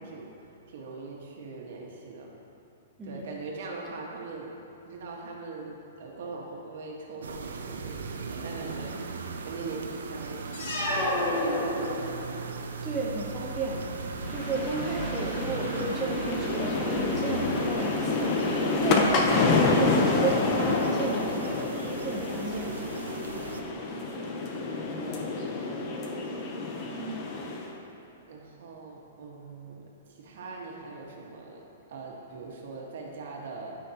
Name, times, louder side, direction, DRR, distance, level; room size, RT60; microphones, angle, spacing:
voice 1, 0.0-2.3 3.0-4.5 4.8-9.0 9.4-10.9 11.3-12.1 23.3-24.3 24.9-25.9 26.9-27.2 28.3-31.6 31.9-33.7, right 3 dB, 60° right, -2 dB, 1.6 m, -42 dB
sound 1, 7.2-23.6, right 4 dB, 90° right, 0.7 m, -37 dB
sound 2, 10.5-12.4, left 1 dB, 65° left, 1.8 m, -29 dB
voice 2, 12.8-13.8 14.3-22.7 26.8-27.2, right 2 dB, 10° right, -4 dB, 0.8 m, -33 dB
sound 3, 14.2-27.7, left 3 dB, 35° left, 0.8 m, -28 dB
13.0 x 5.6 x 3.0 m, 2.8 s
hypercardioid pair, 150°, 0 cm